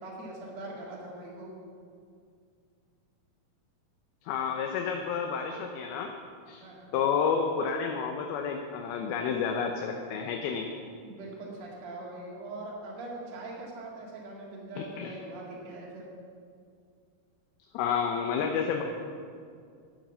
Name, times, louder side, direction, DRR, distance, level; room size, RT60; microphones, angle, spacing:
voice 1, 0.0-1.5 6.6-6.9 11.0-16.0, right 2 dB, 50° right, -4 dB, 3.2 m, -42 dB
voice 2, 4.3-6.1 6.5-6.6 6.9-10.7 14.8-15.1 17.7-18.8, left 6 dB, 80° left, 3 dB, 2.7 m, -30 dB
12.0 x 9.2 x 7.4 m, 2.3 s
omnidirectional pair, 4.4 m